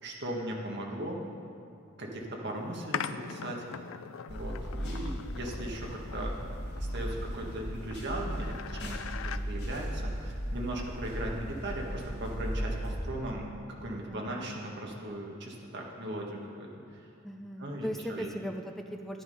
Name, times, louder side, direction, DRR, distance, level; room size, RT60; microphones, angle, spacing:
voice 1, 0.0-1.2 2.0-3.9 4.3-6.3 6.7-17.1 17.6-18.3, right 1 dB, 55° right, -1 dB, 1.6 m, -38 dB
sound 1, 2.9-9.4, left 7 dB, 80° left, 0.4 m, -42 dB
sound 2, 4.3-12.9, equal, 55° left, 2.6 m, -36 dB
voice 2, 17.2-19.2, equal, ahead, 3 dB, 0.5 m, -38 dB
11.0 x 9.9 x 5.5 m, 2.5 s
head